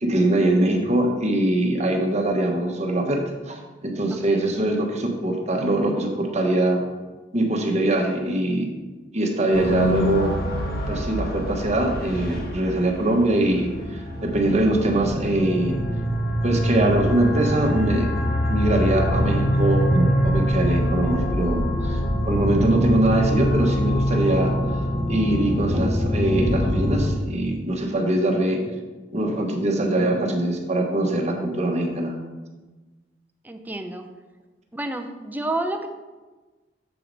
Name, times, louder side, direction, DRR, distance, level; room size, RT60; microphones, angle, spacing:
voice 1, 0.0-6.8 7.3-8.7 9.1-10.3 10.9-15.8 16.4-18.1 18.5-22.0 22.3-24.8 25.1-28.6 29.1-32.1, right 1 dB, 40° right, 2 dB, 1.1 m, -22 dB
voice 2, 4.1-4.4 33.4-34.1 34.7-35.9, right 2 dB, 10° right, 6 dB, 0.5 m, -30 dB
sound 1, 9.5-27.1, equal, 60° left, 1.2 m, -24 dB
7.1 x 4.7 x 5.2 m, 1.2 s
head